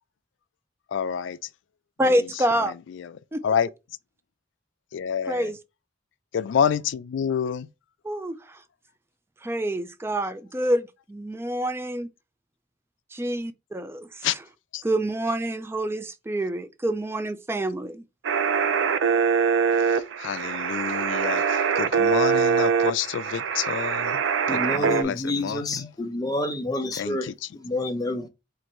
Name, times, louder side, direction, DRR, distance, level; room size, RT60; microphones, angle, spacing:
voice 1, 0.9-1.4 2.0-3.7 4.9-5.5 6.3-7.7 14.2-14.3 14.7-14.8 19.8-24.2 24.5-25.9 26.9-27.6, left 8 dB, 85° left, 0.3 m, -29 dB
voice 2, 2.0-2.7 3.3-3.4 5.3-5.6 8.0-8.3 9.4-10.8 11.1-12.1 13.1-14.1 14.8-18.0, right 1 dB, 15° right, 0.4 m, -27 dB
sound 1, 18.2-25.0, right 6 dB, 90° right, 0.5 m, -23 dB
voice 3, 24.5-27.3 27.6-28.3, left 1 dB, 20° left, 0.6 m, -28 dB
4.5 x 2.5 x 4.3 m
head